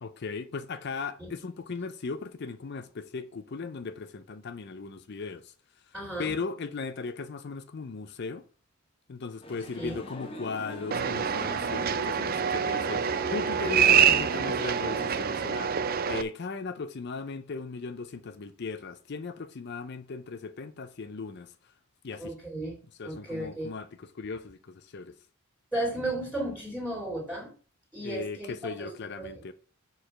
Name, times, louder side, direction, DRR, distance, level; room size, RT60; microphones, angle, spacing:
voice 1, 0.0-5.5 5.9-8.4 9.1-15.8 16.1-21.5 22.0-22.3 22.9-25.2 28.0-29.5, left 4 dB, 50° left, 0.5 m, -37 dB
voice 2, 5.9-6.3 9.8-10.0 22.2-22.8 23.0-23.7 25.7-27.5 27.9-28.9 29.2-29.5, right 1 dB, 5° right, 2.3 m, -34 dB
Male speech man speaking, 9.4-15.2, left 1 dB, 25° left, 0.9 m, -42 dB
sound 1, 10.9-16.2, right 7 dB, 40° right, 0.4 m, -26 dB
6.6 x 4.8 x 5.7 m
head